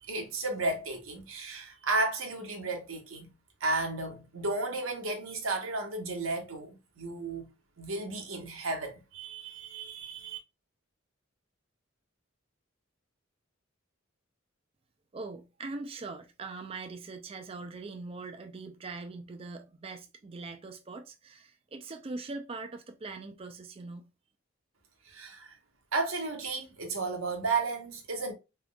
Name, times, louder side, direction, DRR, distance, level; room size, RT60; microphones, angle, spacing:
voice 1, 0.0-3.3 3.6-7.5 7.8-10.4 25.1-25.6 25.9-28.3, right 3 dB, 90° right, 1.2 m, -33 dB
voice 2, 15.1-24.1, right 3 dB, 30° right, 0.4 m, -42 dB
3.6 x 3.6 x 2.2 m
head